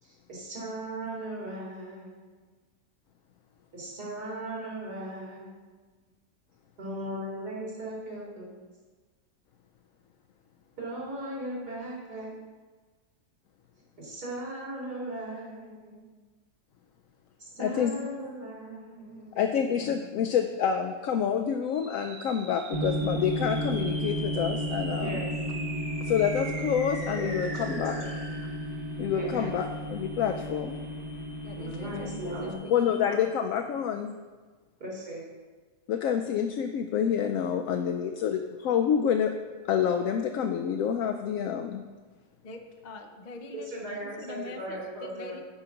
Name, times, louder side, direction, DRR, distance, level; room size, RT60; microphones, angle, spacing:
voice 1, 0.0-2.4 3.7-5.7 6.8-8.6 10.8-12.3 14.0-16.1 17.4-19.4 19.7-19.8 24.9-25.3 27.1-28.0 29.1-29.7 31.6-32.7 34.8-35.3 43.5-45.4, right 1 dB, 80° right, -4 dB, 3.2 m, -38 dB
voice 2, 17.6-17.9 19.1-25.2 26.0-28.0 29.0-30.8 32.7-34.1 35.9-39.3 39.7-41.8, left 8 dB, 70° left, 4 dB, 0.9 m, -28 dB
sound 1, 21.7-33.2, right 2 dB, 60° right, 1.7 m, -43 dB
sound 2, 22.7-32.5, equal, 40° right, 0.9 m, -33 dB
voice 3, 31.4-32.5 33.0-33.4 42.4-45.4, left 3 dB, 45° left, 4 dB, 0.5 m, -44 dB
8.9 x 5.0 x 5.8 m, 1.3 s
omnidirectional pair, 1.7 m